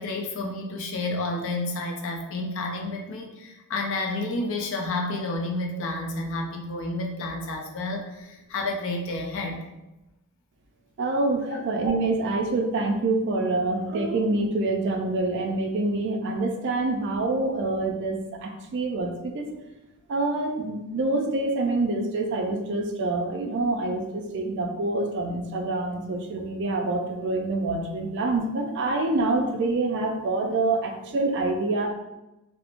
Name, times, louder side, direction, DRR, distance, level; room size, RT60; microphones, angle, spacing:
voice 1, 0.0-9.6 11.5-11.6, left 2 dB, 60° left, 1 dB, 0.4 m, -30 dB
voice 2, 11.0-19.5 20.1-31.9, right 2 dB, 55° right, 3 dB, 0.4 m, -26 dB
2.9 x 2.0 x 2.4 m, 0.98 s
head